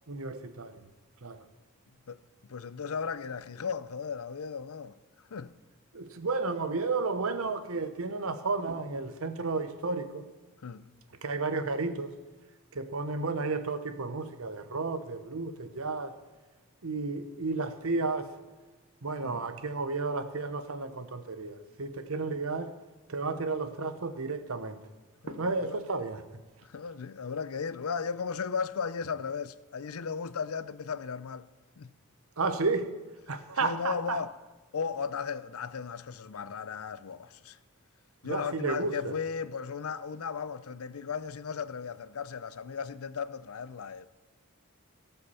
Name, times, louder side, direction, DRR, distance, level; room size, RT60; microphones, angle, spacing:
voice 1, 0.1-0.8 1.2-1.4 5.9-10.3 11.2-12.2 12.7-16.2 16.8-18.3 19.0-22.7 23.1-24.8 25.3-26.3 32.4-33.0 33.3-34.2 38.2-39.1, right 3 dB, 70° right, 1.0 m, -32 dB
voice 2, 2.1-4.9 5.3-5.5 10.6-10.9 19.2-19.4 25.2-25.8 26.6-31.5 31.8-31.9 33.6-34.3 34.7-37.6 38.2-44.1, left 6 dB, 80° left, 0.6 m, -36 dB
17.5 x 5.8 x 7.0 m
head